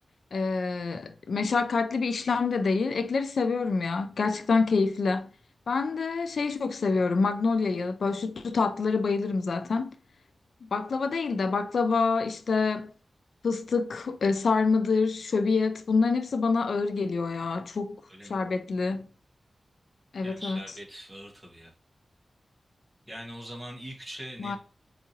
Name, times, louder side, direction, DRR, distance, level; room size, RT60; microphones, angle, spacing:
voice 1, 0.3-5.3 5.7-9.9 10.7-12.9 13.4-18.0 18.3-19.1 20.1-20.6 24.4-24.6, left 4 dB, 80° left, 0.3 m, -26 dB
voice 2, 20.2-21.7 23.1-24.6, equal, 10° right, 1.4 m, -42 dB
4.6 x 2.8 x 2.8 m
wide cardioid pair, 110°, 0 cm